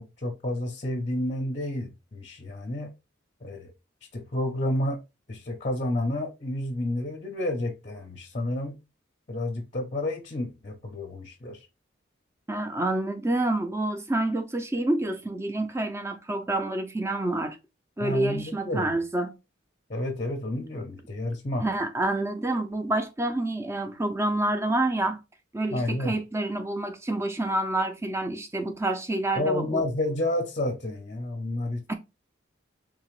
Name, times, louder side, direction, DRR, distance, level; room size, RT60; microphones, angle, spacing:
voice 1, 0.0-2.9 3.4-3.7 4.1-5.0 5.3-8.7 9.3-11.6 18.0-18.9 19.9-21.7 25.7-26.1 29.3-31.9, left 1 dB, 35° left, 0.6 m, -30 dB
voice 2, 12.5-17.6 18.0-19.4 21.6-25.2 25.5-29.8 31.9-32.0, right 2 dB, 15° right, 0.5 m, -28 dB
3.7 x 2.9 x 3.1 m
head